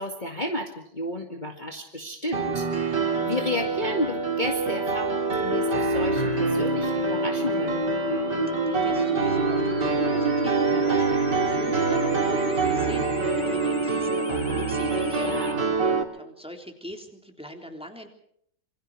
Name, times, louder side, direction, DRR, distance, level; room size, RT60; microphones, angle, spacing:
voice 1, 0.0-7.9 14.9-15.6, left 2 dB, 25° left, 2 dB, 2.2 m, -32 dB
Piano, 2.3-16.0, right 5 dB, 70° right, 3.5 m, -26 dB
sound 1, 5.5-15.5, left 2 dB, 55° left, 2.6 m, -31 dB
voice 2, 8.7-11.0 11.3-15.4 16.1-18.1, equal, 5° right, 4 dB, 3.4 m, -40 dB
27.5 x 24.5 x 4.7 m, 0.69 s
omnidirectional pair, 1.9 m